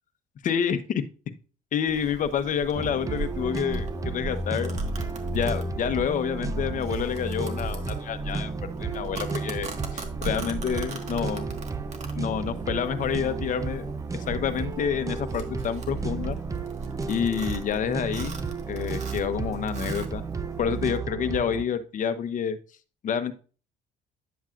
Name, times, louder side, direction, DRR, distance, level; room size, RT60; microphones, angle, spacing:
voice 1, 0.4-0.8 1.7-4.7 5.3-8.5 8.8-9.7 10.2-11.5 12.2-13.9 14.1-16.4 17.1-18.4 18.7-20.2 20.6-22.6 23.0-23.3, left 8 dB, 50° left, 11 dB, 0.9 m, -28 dB
Domestic sounds home sounds, 1.9-21.0, right 2 dB, 45° right, 1.6 m, -38 dB
sound 1, 2.8-21.7, right 4 dB, 20° right, 0.6 m, -33 dB
10.5 x 7.2 x 2.5 m, 0.38 s
cardioid pair, 110°, 17 cm